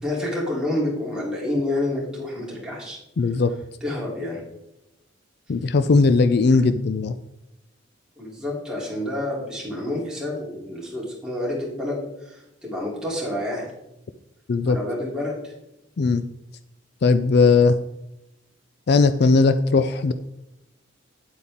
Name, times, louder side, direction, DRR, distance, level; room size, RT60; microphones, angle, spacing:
voice 1, 0.0-3.0 3.8-4.4 8.2-13.7 14.6-15.5, left 1 dB, 5° right, -5 dB, 3.2 m, -28 dB
voice 2, 3.2-3.5 5.5-7.1 14.5-14.8 16.0-16.2 17.0-17.8 18.9-20.1, left 4 dB, 55° left, 12 dB, 0.4 m, -18 dB
9.5 x 8.2 x 3.6 m, 0.90 s
head